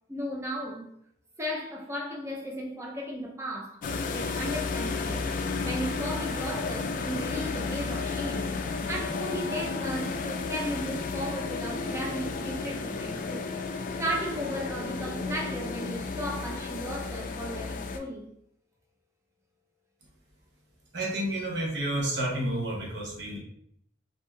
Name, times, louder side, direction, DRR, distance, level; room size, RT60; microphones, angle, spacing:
voice 1, 0.1-0.9 1.4-3.8 4.1-5.3 5.6-8.5 8.9-13.5 14.0-18.3, equal, 15° right, 0.5 m, -35 dB
sound 1, 3.8-18.0, left 4 dB, 50° left, 0.3 m, -33 dB
voice 2, 20.9-23.4, right 1 dB, 80° right, 0.8 m, -30 dB
3.1 x 2.6 x 2.3 m
head